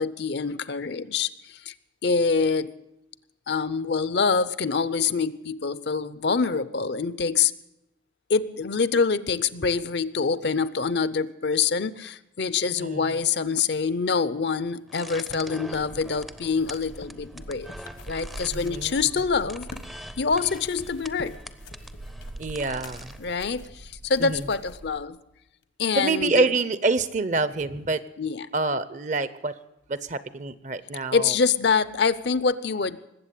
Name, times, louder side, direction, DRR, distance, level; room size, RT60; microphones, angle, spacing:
voice 1, 0.0-1.7 2.0-2.7 3.5-7.5 8.3-17.7 18.1-19.7 20.2-21.4 23.2-25.2 25.8-26.5 28.2-28.5 31.1-33.0, left 5 dB, 60° left, 16 dB, 0.6 m, -25 dB
voice 2, 12.8-13.1 18.5-18.9 22.4-23.1 24.2-24.4 26.0-28.0 28.5-29.5 29.9-31.3, right 3 dB, 40° right, 15 dB, 0.7 m, -26 dB
sound 1, 14.8-20.0 20.3-24.8 25.6-25.7, left 3 dB, 80° left, 1.3 m, -49 dB
sound 2, 14.9-23.3, equal, ahead, 0.5 m, -44 dB
sound 3, 15.7-25.0, right 2 dB, 80° right, 0.7 m, -44 dB
20.0 x 8.1 x 8.3 m, 0.87 s
head